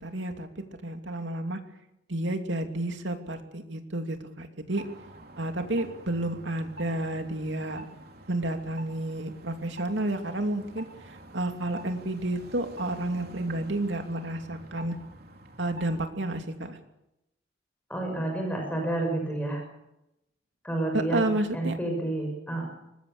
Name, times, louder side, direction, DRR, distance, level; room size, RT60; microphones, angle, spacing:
voice 1, 0.0-1.6 2.1-4.8 5.4-7.9 8.3-15.0 15.6-16.8 20.9-21.8, right 1 dB, 80° right, 5 dB, 2.8 m, -31 dB
sound 1, 4.7-16.1, right 1 dB, 55° right, 3.1 m, -47 dB
voice 2, 17.9-19.6 20.6-22.7, right 2 dB, 10° left, 2 dB, 6.4 m, -30 dB
24.5 x 21.0 x 6.8 m, 0.88 s
head